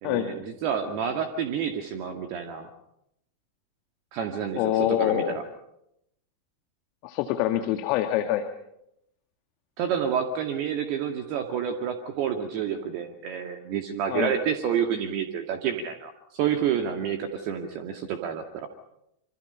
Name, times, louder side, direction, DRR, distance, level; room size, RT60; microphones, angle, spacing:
voice 1, 0.0-2.7 4.1-5.4 9.8-18.7, right 8 dB, 45° right, 6 dB, 2.2 m, -29 dB
voice 2, 4.6-5.4 7.0-8.4 14.1-14.3, left 13 dB, 45° left, 7 dB, 1.8 m, -25 dB
26.5 x 26.0 x 5.7 m, 0.80 s
figure-of-eight pair, 90°, 0 cm